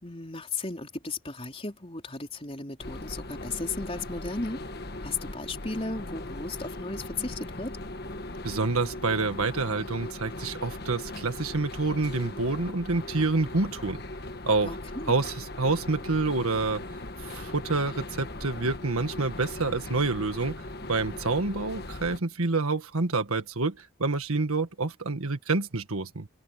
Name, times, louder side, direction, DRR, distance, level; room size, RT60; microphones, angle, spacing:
voice 1, 0.0-4.6 5.0-7.7 14.6-15.1, left 3 dB, 25° left, 4.3 m, -35 dB
sound 1, 2.8-22.2, left 2 dB, 50° left, 1.5 m, -39 dB
voice 2, 8.4-14.0 14.4-14.7 15.1-16.8 17.2-20.6 20.9-26.3, right 3 dB, 90° right, 1.7 m, -28 dB
head